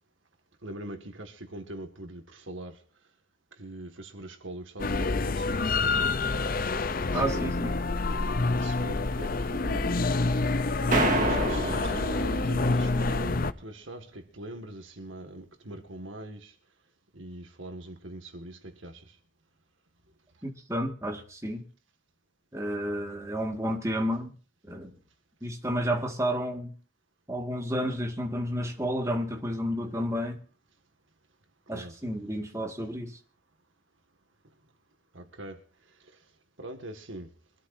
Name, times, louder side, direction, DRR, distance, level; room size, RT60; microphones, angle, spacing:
voice 1, 0.6-2.8 3.6-6.0 6.4-6.5 7.1-7.6 8.6-10.0 11.0-16.6 17.1-19.2 31.7-32.0 35.1-35.6 36.6-37.3, right 1 dB, 65° right, 2.0 m, -42 dB
sound 1, 4.8-13.5, left 3 dB, 45° left, 0.7 m, -27 dB
voice 2, 7.1-7.7 20.4-21.6 22.5-24.3 24.7-24.9 25.4-26.7 27.3-30.4 31.7-33.2, equal, 15° right, 1.9 m, -31 dB
sound 2, 10.9-12.9, right 2 dB, 40° right, 2.2 m, -28 dB
24.5 x 13.0 x 2.7 m
head